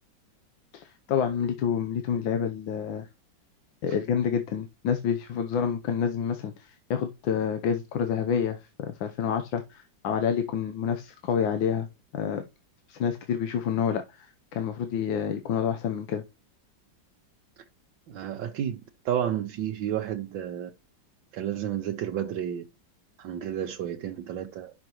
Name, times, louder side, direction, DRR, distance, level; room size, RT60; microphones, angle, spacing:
voice 1, 0.7-3.1 3.8-11.9 12.1-12.4 12.9-16.2, left 7 dB, 90° left, 1.6 m, -28 dB
voice 2, 18.1-18.8 19.0-20.7 21.3-22.6 23.2-24.7, right 10 dB, 85° right, 1.5 m, -31 dB
10.5 x 6.2 x 3.0 m
omnidirectional pair, 2.0 m